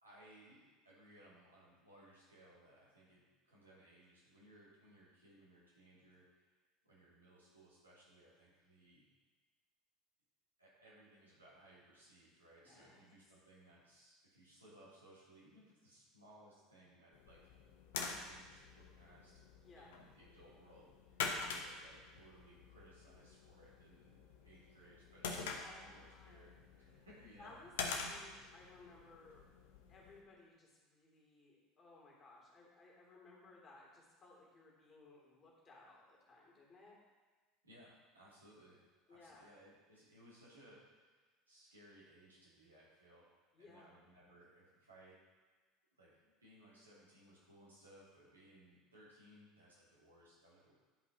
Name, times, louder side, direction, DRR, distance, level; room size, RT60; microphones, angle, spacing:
voice 1, 0.0-6.3 6.8-9.1 10.6-17.4 18.0-19.3 19.7-26.5 26.8-27.6 37.6-38.8 39.1-41.2 41.5-43.3 43.6-45.2 46.0-50.8, right 1 dB, 80° right, -8 dB, 2.8 m, -63 dB
voice 2, 12.6-13.0 19.6-19.9 25.6-26.5 27.4-29.4 29.9-37.0 39.1-39.5 43.5-44.0, left 3 dB, 30° left, -4 dB, 2.9 m, -61 dB
sound 1, 17.1-30.2, left 5 dB, 65° left, 0.8 m, -46 dB
11.0 x 5.3 x 4.1 m, 1.4 s
figure-of-eight pair, 70°, 0 cm